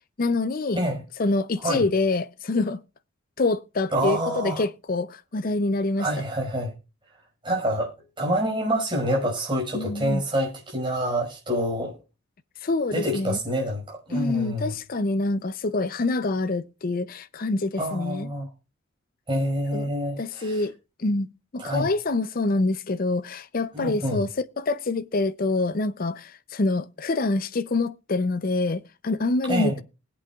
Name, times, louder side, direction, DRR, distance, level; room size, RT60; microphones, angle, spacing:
voice 1, 0.2-0.8 1.2-2.8 3.4-6.1 9.7-10.2 12.6-13.4 14.1-18.3 19.7-19.9 20.2-20.7 21.0-21.3 21.5-24.3 24.6-29.8, left 2 dB, 40° left, 0.5 m, -26 dB
voice 2, 3.9-4.6 6.0-6.7 7.4-12.0 12.9-14.7 17.8-18.5 19.3-20.6 21.6-21.9 23.7-24.2 29.5-29.8, equal, 20° right, 5.3 m, -27 dB
20.5 x 8.4 x 2.3 m
head